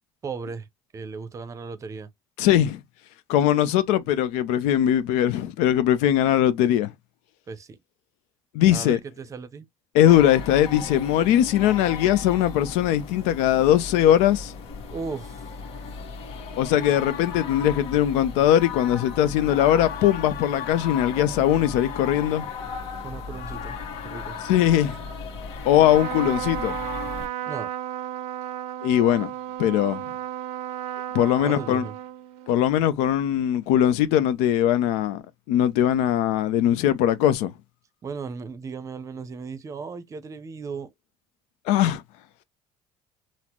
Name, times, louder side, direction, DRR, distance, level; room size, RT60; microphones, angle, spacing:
voice 1, 0.2-0.7 0.9-2.1 7.5-7.8 8.7-9.6 14.9-15.4 23.0-23.8 24.0-24.4 27.5-27.7 31.4-31.9 38.0-40.9, right 5 dB, 30° right, 0.6 m, -36 dB
voice 2, 2.4-2.8 3.3-6.9 8.5-9.0 9.9-14.5 16.6-22.5 24.5-25.0 25.6-26.8 28.8-29.3 29.6-30.0 31.1-31.8 32.5-37.5 41.7-42.0, left 11 dB, 85° left, 0.5 m, -20 dB
sound 1, 10.1-27.3, left 5 dB, 65° left, 1.1 m, -36 dB
Trumpet, 25.7-32.6, right 12 dB, 75° right, 0.5 m, -33 dB
4.1 x 2.0 x 2.9 m
cardioid pair, 115°, 11 cm